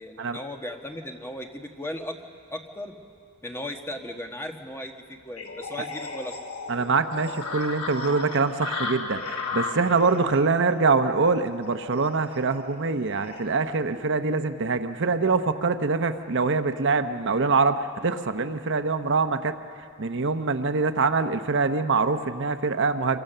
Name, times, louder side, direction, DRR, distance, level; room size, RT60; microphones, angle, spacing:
voice 1, 0.0-3.0 3.4-6.3, left 1 dB, 10° left, 3 dB, 1.4 m, -37 dB
sound 1, 5.4-13.6, left 3 dB, 85° left, 2.8 m, -36 dB
voice 2, 6.7-19.5 20.0-23.2, right 4 dB, 60° right, 9 dB, 0.8 m, -24 dB
27.0 x 23.0 x 6.8 m, 2.3 s
head